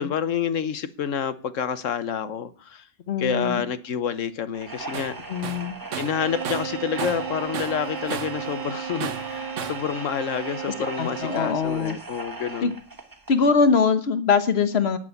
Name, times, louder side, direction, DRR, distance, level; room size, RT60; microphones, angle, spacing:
voice 1, 0.0-2.9 3.2-5.2 6.0-12.7, left 7 dB, 85° left, 1.3 m, -28 dB
voice 2, 3.1-3.6 5.3-5.8 10.7-12.0 12.6-12.7 13.3-15.0, left 5 dB, 55° left, 1.4 m, -22 dB
sound 1, 4.5-13.5, right 3 dB, 15° right, 1.3 m, -38 dB
Tools, 4.9-5.2 5.4-7.3 7.5-8.4 9.0-9.9, right 9 dB, 80° right, 1.2 m, -33 dB
Bowed string instrument, 6.0-11.7, right 8 dB, 45° right, 0.9 m, -35 dB
11.0 x 8.0 x 8.0 m
omnidirectional pair, 1.3 m